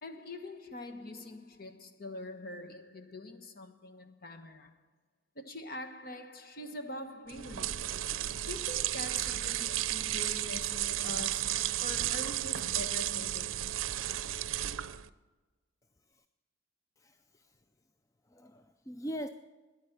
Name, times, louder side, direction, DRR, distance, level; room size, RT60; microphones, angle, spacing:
voice 1, 0.0-4.8 5.3-8.0 8.5-13.7, left 1 dB, 50° left, 1.2 m, -44 dB
sound 1, 7.3-15.1, right 13 dB, 90° right, 0.5 m, -33 dB
voice 2, 17.0-17.5 18.3-19.3, equal, 15° left, 0.4 m, -41 dB
13.5 x 10.0 x 6.6 m
head